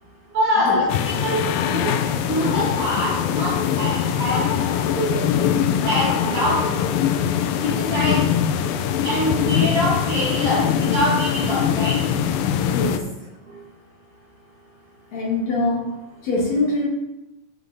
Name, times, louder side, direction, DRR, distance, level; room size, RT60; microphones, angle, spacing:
voice 1, 0.3-2.0 2.3-5.3 5.8-7.1 7.6-8.3 9.0-12.0, equal, 45° right, -6 dB, 3.0 m, -24 dB
sound 1, 0.9-13.0, left 9 dB, 80° left, 2.3 m, -22 dB
voice 2, 12.7-13.2 15.1-15.9 16.2-16.9, left 2 dB, 55° left, -4 dB, 2.6 m, -24 dB
13.5 x 5.1 x 3.9 m, 0.95 s
omnidirectional pair, 4.2 m